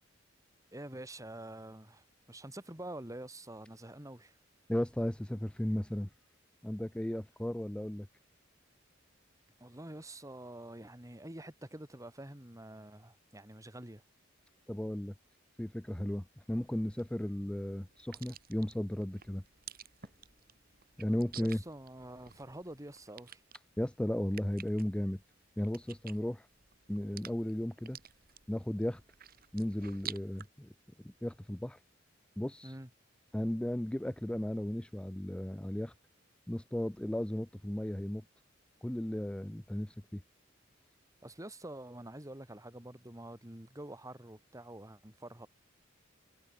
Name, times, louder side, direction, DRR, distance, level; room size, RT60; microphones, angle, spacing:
voice 1, 0.7-4.3 9.6-14.0 21.4-23.4 32.6-32.9 41.2-45.5, right 1 dB, 15° right, 2.4 m, -47 dB
voice 2, 4.7-6.1 6.6-8.1 14.7-15.1 15.6-19.4 21.0-21.6 23.8-25.2 25.6-26.5 26.9-28.0 28.5-29.0 29.5-30.7 31.0-31.8 32.4-32.8 33.3-35.9 36.5-38.2 38.8-40.2, left 1 dB, 5° left, 0.4 m, -35 dB
sound 1, 16.5-30.5, right 9 dB, 50° right, 4.6 m, -52 dB
head